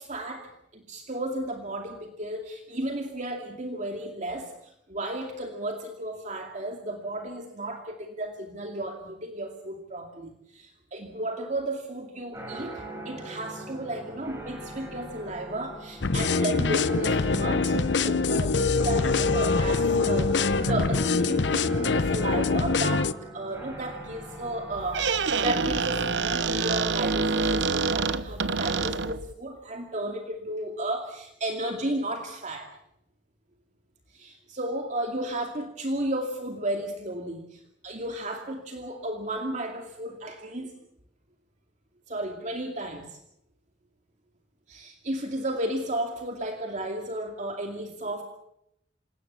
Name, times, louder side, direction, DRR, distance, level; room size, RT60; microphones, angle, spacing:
voice 1, 0.0-23.1 23.3-32.7 34.1-40.7 42.1-43.2 44.7-48.2, right 1 dB, 40° right, 3 dB, 2.5 m, -33 dB
sound 1, 12.3-26.3, right 1 dB, 15° right, 6.6 m, -41 dB
sound 2, 16.0-23.1, left 4 dB, 70° left, 0.8 m, -24 dB
Squeak, 24.7-29.3, right 4 dB, 75° right, 1.0 m, -26 dB
27.5 x 17.5 x 7.4 m, 0.79 s
head